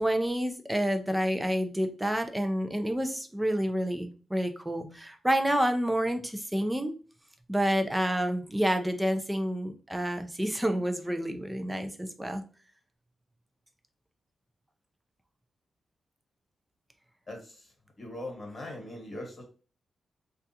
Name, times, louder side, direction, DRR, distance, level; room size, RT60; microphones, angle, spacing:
voice 1, 0.0-6.9 7.5-12.4, equal, 10° right, 7 dB, 0.5 m, -29 dB
voice 2, 17.3-17.7 18.0-19.4, left 1 dB, 35° left, 0 dB, 1.2 m, -40 dB
3.3 x 2.4 x 2.7 m, 0.36 s
cardioid pair, 110°, 0 cm